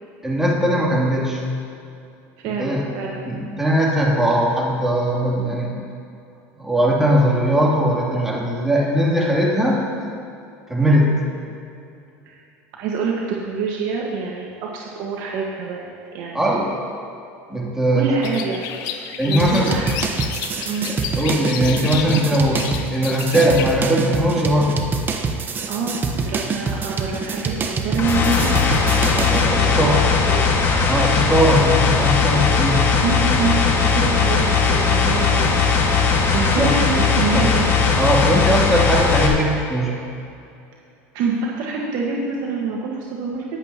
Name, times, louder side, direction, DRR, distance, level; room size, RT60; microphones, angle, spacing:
voice 1, 0.2-1.4 2.6-2.9 3.3-5.7 6.6-9.8 10.7-11.1 16.3-16.8 17.5-18.1 19.2-19.7 21.1-22.6 22.9-24.8 29.1-30.0 30.9-32.9 36.6-36.7 37.3-37.5 38.0-40.0, equal, 5° right, -4 dB, 2.7 m, -19 dB
voice 2, 2.4-3.2 10.8-11.0 12.2-12.4 12.7-16.6 17.9-18.7 19.3-19.9 20.6-20.9 25.7-28.6 29.5-30.0 30.3-30.5 33.0-35.7 36.3-37.7 41.1-43.4, right 4 dB, 65° right, -2 dB, 1.5 m, -26 dB
sound 1, 18.2-23.6, left 8 dB, 60° left, 0.9 m, -31 dB
sound 2, 19.4-29.5, right 4 dB, 30° right, 0.9 m, -26 dB
sound 3, 28.0-39.3, left 5 dB, 35° left, 1.7 m, -18 dB
20.0 x 8.1 x 2.9 m, 2.6 s
supercardioid pair, 110°, 7 cm